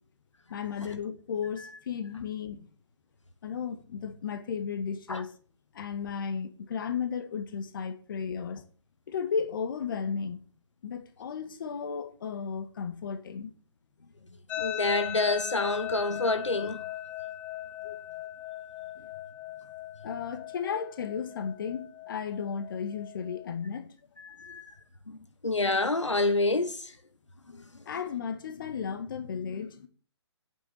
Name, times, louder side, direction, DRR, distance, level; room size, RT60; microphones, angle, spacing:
voice 1, 0.5-2.7 3.4-5.3 5.7-8.6 9.1-10.4 10.8-13.5 17.8-18.0 19.0-19.1 20.0-23.9 27.5-29.9, left 6 dB, 45° left, 1.9 m, -34 dB
sound 1, 14.5-23.5, left 13 dB, 10° left, 0.6 m, -39 dB
voice 2, 14.6-16.8 24.2-24.6 25.1-25.2 25.4-26.9, left 2 dB, 90° left, 1.2 m, -27 dB
8.9 x 7.5 x 8.4 m
figure-of-eight pair, 140°, 15 cm